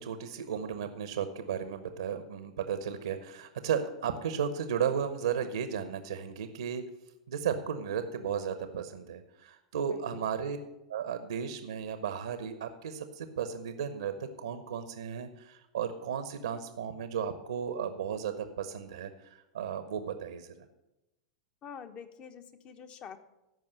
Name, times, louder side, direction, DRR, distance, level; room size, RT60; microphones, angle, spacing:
voice 1, 0.0-6.9 7.3-10.6 10.9-20.7, right 7 dB, 80° right, 9 dB, 0.9 m, -34 dB
voice 2, 9.9-10.3 21.6-23.2, left 7 dB, 35° left, 10 dB, 1.0 m, -46 dB
14.0 x 5.4 x 6.7 m, 0.95 s
hypercardioid pair, 95°, 3 cm